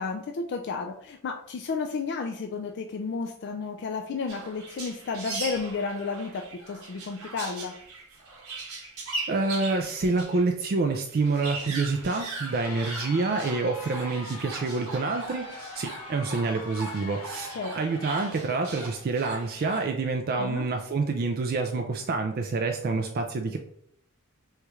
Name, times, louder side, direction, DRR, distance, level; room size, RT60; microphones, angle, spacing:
voice 1, 0.0-7.7 17.5-17.7 20.3-20.7, left 4 dB, 50° left, 3 dB, 0.3 m, -32 dB
sound 1, 4.3-10.5 10.8-10.9 11.1-19.8, right 3 dB, 85° right, 1.7 m, -39 dB
voice 2, 9.3-23.6, right 3 dB, 45° right, 4 dB, 0.4 m, -27 dB
Crowd, 12.2-18.6, left 2 dB, 70° left, 0.8 m, -42 dB
6.3 x 2.4 x 3.1 m, 0.67 s
head